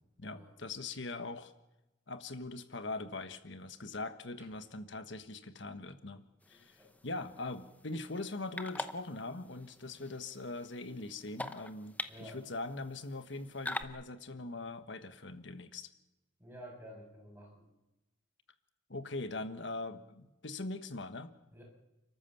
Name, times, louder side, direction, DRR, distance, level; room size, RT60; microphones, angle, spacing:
voice 1, 0.2-1.5 2.1-15.9 18.9-21.3, left 2 dB, 70° left, 9 dB, 1.4 m, -42 dB
sound 1, 6.4-13.8, left 1 dB, 10° left, 0.8 m, -45 dB
voice 2, 6.5-6.9 12.1-12.4 16.4-17.7 21.5-21.6, equal, 10° right, -1 dB, 7.1 m, -51 dB
29.5 x 13.5 x 7.2 m, 1.0 s
head